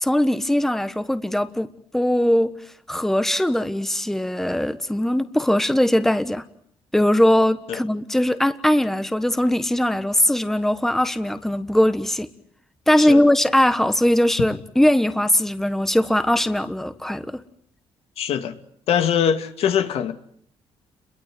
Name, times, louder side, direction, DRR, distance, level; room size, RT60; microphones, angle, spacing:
voice 1, 0.0-2.6 2.9-6.4 6.9-12.3 12.9-17.4, left 1 dB, 5° left, 1.3 m, -20 dB
voice 2, 18.2-18.5 18.9-20.1, left 8 dB, 75° left, 2.1 m, -22 dB
29.5 x 22.5 x 7.8 m
cardioid pair, 100°, 10 cm